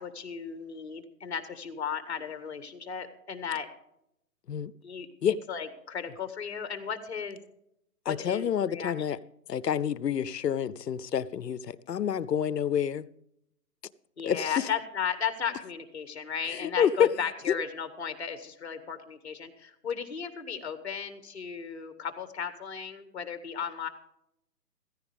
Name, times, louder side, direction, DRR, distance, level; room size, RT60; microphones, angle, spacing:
voice 1, 0.0-3.7 4.8-7.4 8.1-9.2 14.2-23.9, left 7 dB, 40° left, 9 dB, 1.8 m, -35 dB
voice 2, 8.1-9.2 9.5-13.1 14.2-14.7 16.5-17.1 17.5-17.6, left 8 dB, 85° left, 19 dB, 0.8 m, -28 dB
15.5 x 15.0 x 3.5 m, 0.79 s
hypercardioid pair, 170°, 48 cm